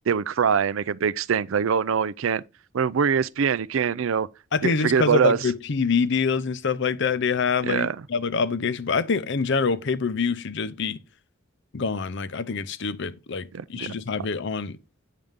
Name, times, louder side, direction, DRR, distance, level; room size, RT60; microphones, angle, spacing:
voice 1, 0.1-2.4 2.7-4.3 4.6-5.4 7.6-8.0 13.5-13.9, right 6 dB, 75° right, 0.4 m, -23 dB
voice 2, 4.5-11.0 11.7-14.8, left 5 dB, 60° left, 0.6 m, -25 dB
9.1 x 6.6 x 3.6 m
head